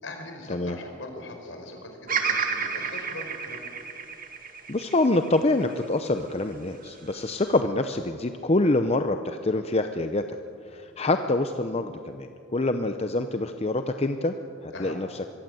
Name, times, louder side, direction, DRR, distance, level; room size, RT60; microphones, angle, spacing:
voice 1, 0.0-3.6 14.7-15.0, left 2 dB, 70° left, 4 dB, 4.6 m, -40 dB
Bird vocalization bird call bird song, 2.1-6.3 6.9-7.6, right 6 dB, 45° right, 2.0 m, -31 dB
voice 2, 4.7-10.4 10.7-14.3 14.6-15.1, left 2 dB, 30° left, 8 dB, 0.7 m, -26 dB
25.0 x 22.5 x 7.8 m, 2.7 s
head